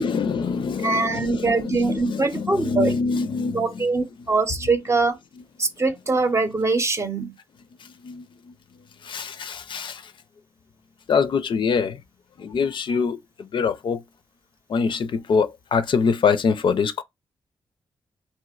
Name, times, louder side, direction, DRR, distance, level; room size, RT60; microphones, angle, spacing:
voice 1, 0.0-3.7 8.0-8.2 9.0-10.0 11.1-12.0 12.4-14.0 14.7-17.0, left 5 dB, 60° left, 0.4 m, -24 dB
voice 2, 0.8-3.0 3.5-5.2 5.6-7.3, right 3 dB, 30° right, 0.7 m, -23 dB
3.1 x 2.7 x 2.3 m
cardioid pair, 50°, 9 cm